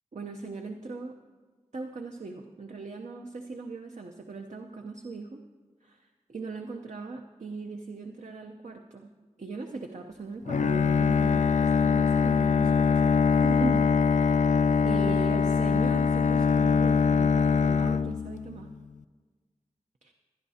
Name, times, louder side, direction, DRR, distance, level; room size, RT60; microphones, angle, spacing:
voice 1, 0.1-1.2 1.7-5.4 5.8-9.1 9.4-14.5 14.8-18.7 20.0-20.1, right 3 dB, 70° right, 3 dB, 0.7 m, -39 dB
Bowed string instrument, 10.5-18.7, left 6 dB, 75° left, 0.4 m, -23 dB
25.0 x 10.5 x 2.8 m, 1.4 s
wide cardioid pair, 75°, 13 cm